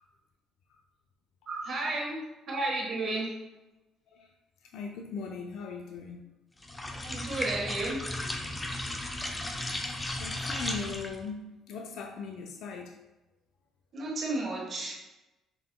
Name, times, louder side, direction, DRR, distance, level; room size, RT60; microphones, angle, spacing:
voice 1, 1.5-2.2 2.5-3.3 7.0-8.1 13.9-14.9, right 2 dB, 40° right, 1.3 m, -32 dB
voice 2, 4.7-6.4 9.9-13.0, left 5 dB, 70° left, 0.4 m, -39 dB
sound 1, 6.6-11.3, left 1 dB, 15° left, 0.4 m, -35 dB
5.7 x 3.6 x 2.3 m
cardioid pair, 135°, 0 cm